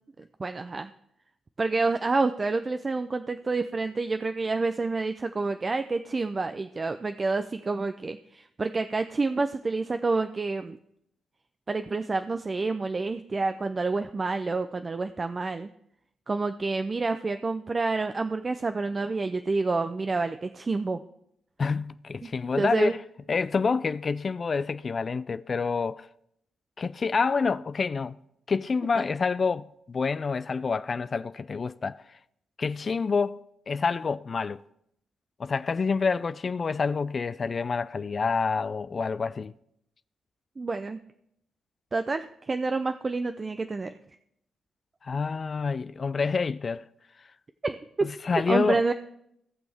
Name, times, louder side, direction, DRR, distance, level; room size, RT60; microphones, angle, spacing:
voice 1, 0.4-0.9 1.6-10.8 11.7-15.7 16.3-21.0 22.2-22.3 22.6-22.9 40.6-41.0 41.9-43.9 47.6-47.8 48.3-48.9, right 3 dB, 35° right, 0.5 m, -28 dB
voice 2, 21.6-23.0 23.3-26.1 26.8-28.2 28.5-32.0 32.6-34.6 35.4-39.5 45.0-46.9 48.0-48.8, left 5 dB, 45° left, 0.3 m, -28 dB
18.0 x 6.1 x 3.5 m
hypercardioid pair, 45°, 0 cm